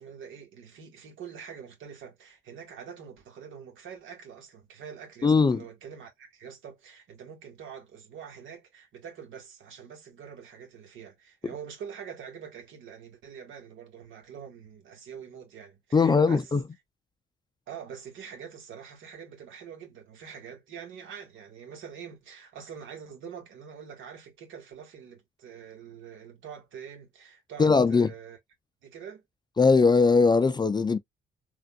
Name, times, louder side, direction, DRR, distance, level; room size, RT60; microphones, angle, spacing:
voice 1, 0.0-16.5 17.7-28.4 28.8-29.2, right 7 dB, 80° right, 1.5 m, -45 dB
voice 2, 5.2-5.6 15.9-16.6 27.6-28.1 29.6-31.0, left 4 dB, 20° left, 0.4 m, -20 dB
3.5 x 2.5 x 2.3 m
cardioid pair, 90°, 20 cm